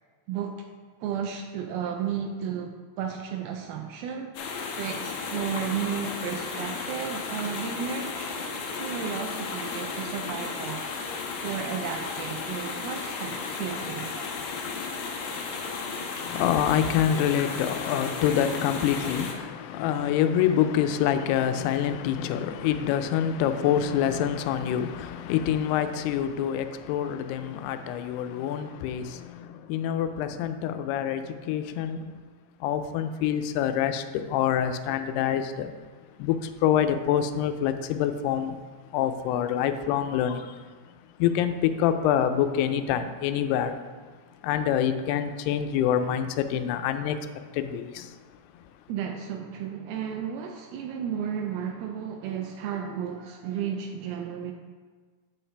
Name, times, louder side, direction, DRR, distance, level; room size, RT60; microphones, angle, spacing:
voice 1, 0.3-0.7 1.0-4.3 4.8-10.8 11.4-14.4 48.9-54.5, right 8 dB, 80° right, 3 dB, 2.4 m, -33 dB
sound 1, 4.3-19.3, left 4 dB, 70° left, 1.8 m, -34 dB
voice 2, 16.3-32.2 32.6-35.7 36.2-38.6 38.9-40.7 41.2-43.8 44.4-47.3 47.5-48.2, left 9 dB, 90° left, 9 dB, 2.6 m, -26 dB
8.6 x 7.2 x 3.3 m, 1.5 s
omnidirectional pair, 4.6 m